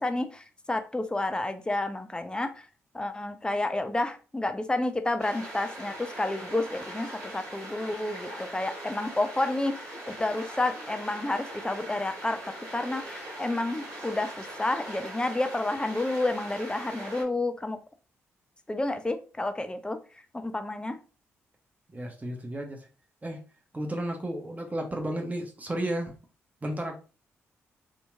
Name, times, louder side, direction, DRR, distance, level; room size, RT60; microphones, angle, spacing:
voice 1, 0.0-2.7 2.9-17.8 18.7-20.0 20.3-21.0, left 2 dB, 15° left, 8 dB, 0.5 m, -30 dB
sound 1, 5.2-17.2, right 1 dB, 65° right, 1.3 m, -41 dB
voice 2, 21.9-22.9 23.2-23.4 23.7-26.1 26.6-27.0, right 1 dB, 25° right, 2 dB, 0.9 m, -33 dB
2.9 x 2.8 x 2.2 m, 0.34 s
hypercardioid pair, 45°, 6 cm